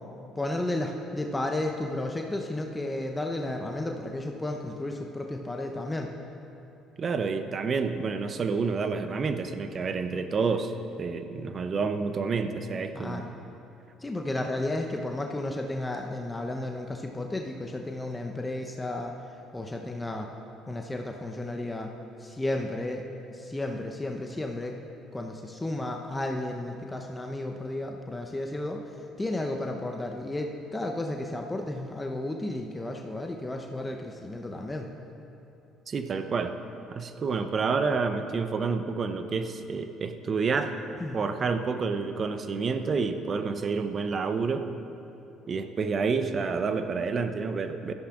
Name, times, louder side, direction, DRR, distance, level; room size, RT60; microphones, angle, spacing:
voice 1, 0.4-6.1 12.9-13.3 14.0-19.1 19.5-20.3 20.7-21.9 22.2-24.8 25.1-28.8 29.2-34.9 41.0-41.2, left 1 dB, 15° left, 2 dB, 0.9 m, -33 dB
voice 2, 7.0-10.7 11.0-13.3 35.9-36.5 36.9-40.7 41.1-44.7 45.5-47.9, right 4 dB, 40° right, 8 dB, 0.8 m, -29 dB
17.0 x 13.5 x 2.6 m, 2.9 s
hypercardioid pair, 55°, 0 cm